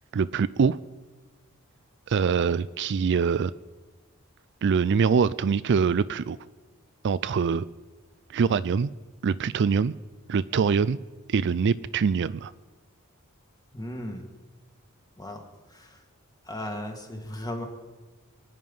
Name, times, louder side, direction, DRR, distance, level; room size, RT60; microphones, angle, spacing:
voice 1, 0.1-0.8 2.1-3.5 4.6-6.4 7.0-7.6 8.3-8.9 9.2-9.9 10.3-11.0 11.3-12.5, right 6 dB, 55° right, 16 dB, 0.4 m, -24 dB
voice 2, 13.7-14.3 15.2-16.0 16.4-17.7, left 1 dB, 20° left, 3 dB, 2.0 m, -36 dB
25.0 x 9.6 x 5.5 m, 1.2 s
head